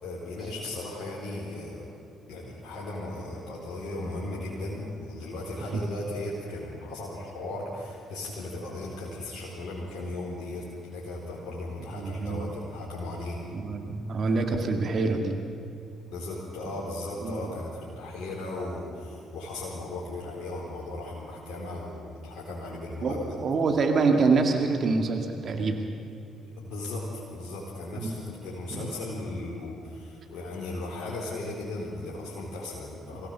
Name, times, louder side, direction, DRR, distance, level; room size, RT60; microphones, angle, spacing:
voice 1, 0.0-1.8 2.3-13.4 16.1-23.2 26.6-33.3, left 2 dB, 60° left, -5 dB, 4.1 m, -36 dB
voice 2, 11.9-12.5 13.5-15.4 17.2-17.5 23.0-25.9 27.9-28.2 28.7-28.9, right 4 dB, 50° right, 4 dB, 2.1 m, -26 dB
24.0 x 16.5 x 6.9 m, 2.5 s
hypercardioid pair, 45°, 0 cm